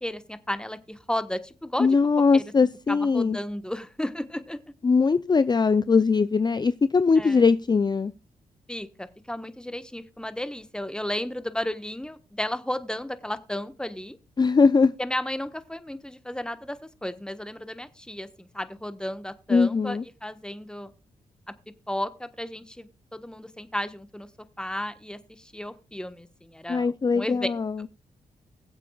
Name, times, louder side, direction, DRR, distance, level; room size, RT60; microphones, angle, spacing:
voice 1, 0.0-2.0 2.3-2.5 2.9-4.6 7.2-7.4 8.7-14.2 15.0-20.9 21.5-21.6 21.9-24.3 24.6-27.5, left 1 dB, 5° left, 11 dB, 1.3 m, -33 dB
voice 2, 1.8-3.4 4.8-8.1 14.4-14.9 19.5-20.0 26.7-27.7, left 4 dB, 30° left, 14 dB, 0.5 m, -21 dB
21.5 x 7.5 x 2.4 m, 0.32 s
supercardioid pair, 45°, 15 cm